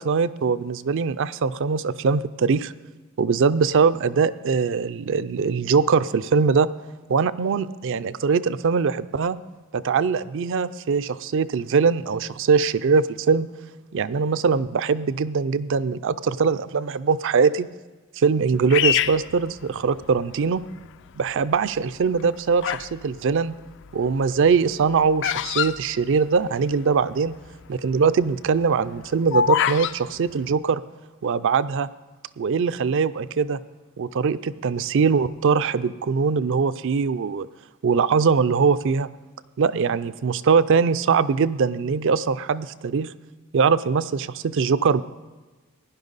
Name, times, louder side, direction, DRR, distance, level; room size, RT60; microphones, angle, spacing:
voice 1, 0.0-2.7 3.2-6.7 7.1-9.4 9.7-13.5 13.9-17.7 18.2-20.6 21.2-23.5 23.9-27.3 27.7-30.8 31.2-31.9 32.4-33.6 34.0-37.5 37.8-39.1 39.6-43.1 43.5-45.0, right 5 dB, 60° right, 14 dB, 0.4 m, -22 dB
Bird vocalization bird call bird song, 18.7-20.2 20.8-21.3 22.0-23.0 23.2-26.7 27.0-27.1 27.3-27.6 28.1-30.0, left 9 dB, 55° left, 0.3 m, -25 dB
16.0 x 10.5 x 4.0 m, 1.2 s
head